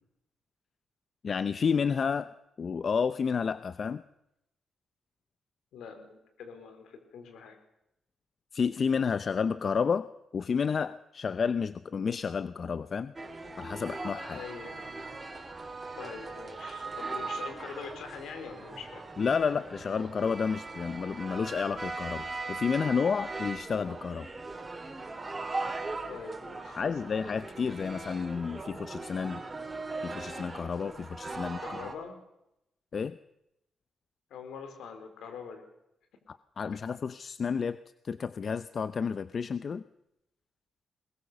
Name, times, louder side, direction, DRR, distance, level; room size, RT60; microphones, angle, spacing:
voice 1, 1.2-2.3 2.6-4.0 8.5-10.1 10.3-13.1 13.6-14.4 19.2-24.3 26.7-29.4 30.0-31.6 32.9-33.2 36.3-37.8 38.0-39.8, left 6 dB, 55° left, 14 dB, 0.7 m, -30 dB
voice 2, 5.7-7.6 14.3-14.9 16.0-19.0 26.1-26.8 31.6-32.2 34.3-35.6, left 6 dB, 85° left, 6 dB, 4.2 m, -44 dB
sound 1, 13.2-31.9, right 3 dB, 30° right, 3.9 m, -39 dB
21.5 x 20.5 x 6.8 m, 0.85 s
supercardioid pair, 60°, 0 cm